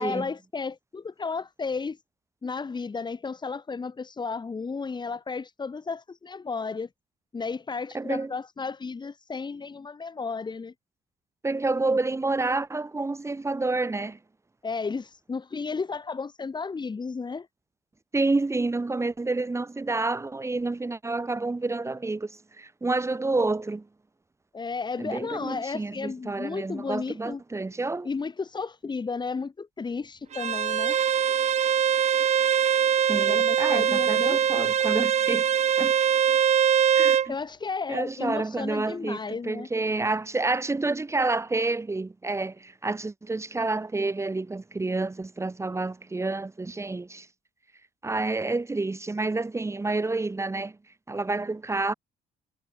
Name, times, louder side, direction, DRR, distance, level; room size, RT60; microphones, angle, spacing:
voice 1, 0.0-2.0 2.4-6.9 7.3-10.7 14.6-17.5 24.5-27.4 28.0-31.0 33.3-34.8 37.3-39.7, left 4 dB, 25° left, 6.1 m, -33 dB
voice 2, 7.9-8.3 11.4-14.2 18.1-23.9 25.0-28.1 33.1-35.5 35.8-35.9 36.9-37.3 37.9-47.3 48.0-50.8 51.1-51.9, right 3 dB, 15° right, 3.3 m, -29 dB
Bowed string instrument, 30.3-37.3, right 8 dB, 45° right, 1.5 m, -22 dB
cardioid pair, 110°, 17 cm